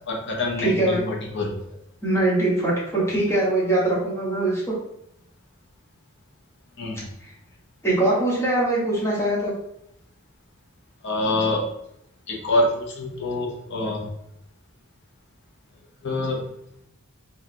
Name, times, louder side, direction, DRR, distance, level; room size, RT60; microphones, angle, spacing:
voice 1, 0.1-1.6 6.8-7.1 11.0-11.6 12.3-14.0 16.0-16.4, left 2 dB, 55° left, -1 dB, 0.7 m, -25 dB
voice 2, 0.6-1.0 2.0-4.7 7.8-9.5, right 1 dB, 10° left, -7 dB, 1.1 m, -22 dB
3.6 x 2.3 x 2.8 m, 0.75 s
head